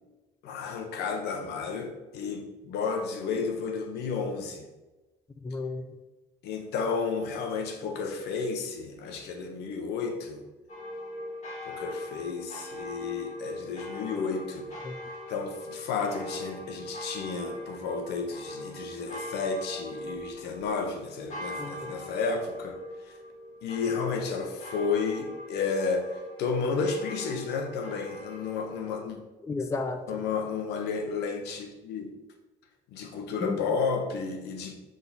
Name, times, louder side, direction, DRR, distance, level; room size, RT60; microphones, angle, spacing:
voice 1, 0.4-4.7 6.4-10.4 11.6-14.7 15.3-23.1 23.6-29.2 30.1-32.1 32.9-34.8, left 5 dB, 80° left, 4 dB, 1.1 m, -32 dB
voice 2, 5.4-5.8 14.8-14.9 21.6-21.9 29.4-30.2 33.4-33.8, left 3 dB, 15° left, 6 dB, 0.5 m, -33 dB
sound 1, 10.7-28.9, left 1 dB, 45° left, 2.2 m, -41 dB
7.2 x 3.9 x 4.0 m, 1.1 s
cardioid pair, 110°, 17 cm